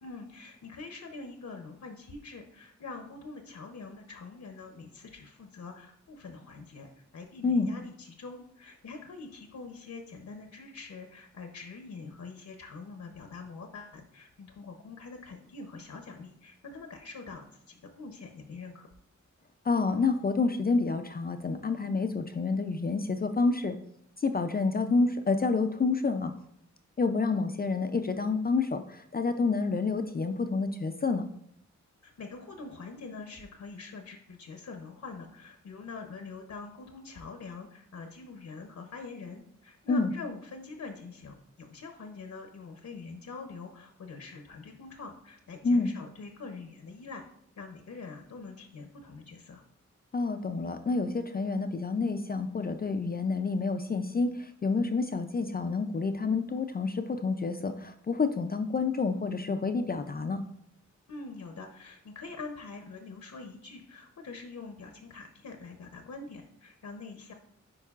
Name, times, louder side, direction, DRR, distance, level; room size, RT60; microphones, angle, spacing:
voice 1, 0.0-18.9 32.0-47.3 47.6-49.6 61.1-67.3, left 4 dB, 65° left, 5 dB, 0.7 m, -44 dB
voice 2, 19.6-23.8 24.2-26.3 27.0-31.2 39.9-40.1 45.6-45.9 50.1-60.4, left 4 dB, 30° left, 7 dB, 0.4 m, -28 dB
9.9 x 4.6 x 2.4 m, 0.70 s
wide cardioid pair, 125°, 30 cm